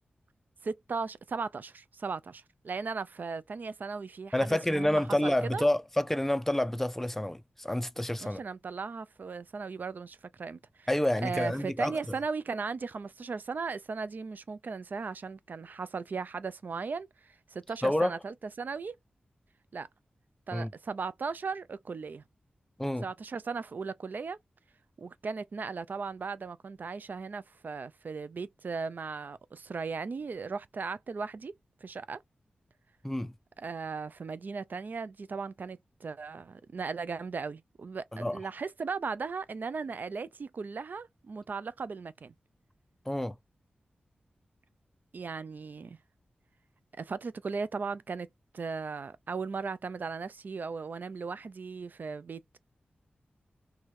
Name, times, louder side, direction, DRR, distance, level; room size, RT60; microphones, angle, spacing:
voice 1, 0.6-5.6 8.2-10.9 11.2-18.9 19.7-19.9 20.5-22.2 23.0-24.4 25.0-31.5 31.8-32.2 33.6-42.3 45.1-46.0 47.0-48.3 48.5-52.6, right 4 dB, 55° right, 0.4 m, -37 dB
voice 2, 4.3-8.4 10.9-12.1 17.8-18.1 20.5-20.7 22.8-23.1 33.0-33.3 38.1-38.4 43.1-43.4, left 1 dB, 10° left, 0.4 m, -29 dB
3.1 x 2.3 x 4.3 m
wide cardioid pair, 85°, 4 cm